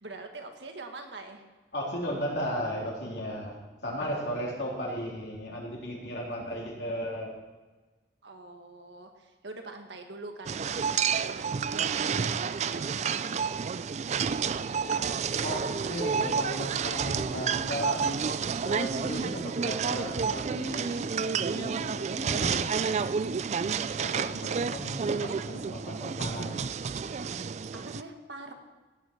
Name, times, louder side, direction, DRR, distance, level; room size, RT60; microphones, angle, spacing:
voice 1, 0.0-1.4 8.2-13.5 27.7-28.5, right 2 dB, 85° right, 4 dB, 1.7 m, -44 dB
voice 2, 1.7-3.6 3.8-7.3 15.4-18.4 18.6-21.0 21.3-22.7 24.0-26.7, equal, 70° left, -2 dB, 3.4 m, -35 dB
sound 1, 10.5-28.0, right 6 dB, 40° right, 0.3 m, -30 dB
17.0 x 9.7 x 4.5 m, 1.3 s
head